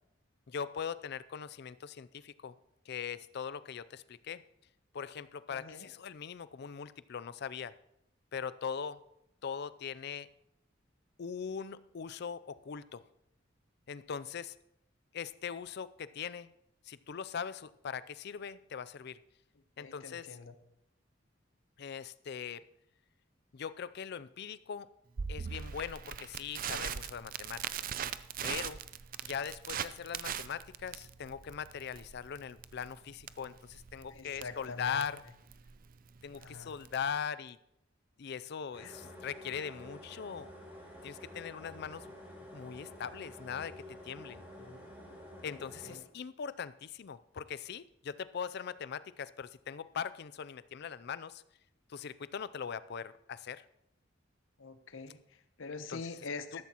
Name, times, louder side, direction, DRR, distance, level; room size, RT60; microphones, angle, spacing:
voice 1, 0.5-2.5 2.9-4.4 4.9-7.7 8.3-9.0 9.4-10.3 11.2-13.0 13.9-14.5 15.1-16.5 16.9-19.2 19.8-20.3 21.8-22.7 23.5-24.9 25.3-28.0 28.4-28.8 29.2-35.2 36.2-37.6 38.2-40.5 41.0-42.1 42.5-44.4 45.4-51.4 51.9-53.7 55.9-56.0, left 7 dB, 55° left, 17 dB, 0.4 m, -40 dB
voice 2, 5.5-5.9 19.8-20.5 34.1-35.1 36.4-36.7 38.8-38.9 44.6-44.8 45.4-46.0 54.6-56.6, left 4 dB, 85° left, 10 dB, 0.9 m, -45 dB
Crackle, 25.2-37.1, right 8 dB, 45° right, 0.4 m, -41 dB
sound 1, 38.7-46.0, left 1 dB, 10° right, 4.3 m, -50 dB
13.5 x 13.0 x 2.9 m, 0.81 s
head